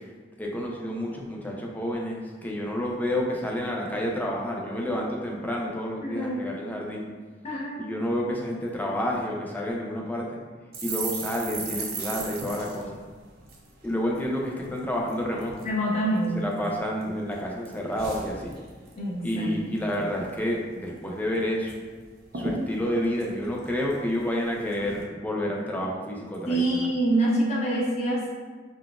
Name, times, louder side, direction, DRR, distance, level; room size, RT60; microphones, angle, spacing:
voice 1, 0.4-7.1 7.8-10.3 10.8-12.9 13.8-15.7 16.3-18.5 19.2-21.7 22.3-26.9, equal, 10° left, -2 dB, 0.3 m, -29 dB
voice 2, 6.0-6.4 7.4-7.8 15.6-16.5 18.9-19.8 26.5-28.3, right 1 dB, 35° left, -6 dB, 0.7 m, -26 dB
sound 1, 10.7-14.3 14.6-14.8 15.1-15.7 16.2-17.0 17.3-19.0 19.3-19.5 19.8-20.4 20.7-20.8 21.1-21.8 22.0-22.1 22.3-24.2 24.7-25.0, right 3 dB, 55° right, 0.5 m, -37 dB
3.7 x 2.3 x 2.3 m, 1.5 s
head